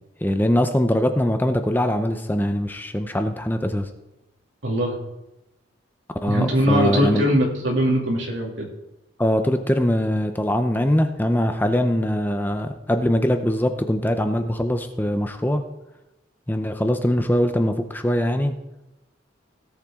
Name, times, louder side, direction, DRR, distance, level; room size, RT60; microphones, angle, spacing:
voice 1, 0.2-3.9 6.2-7.2 9.2-15.6 16.5-18.5, equal, 10° left, 7 dB, 0.6 m, -22 dB
voice 2, 4.6-4.9 6.3-8.7, equal, 70° right, -2 dB, 2.5 m, -21 dB
17.5 x 7.3 x 3.6 m, 0.95 s
head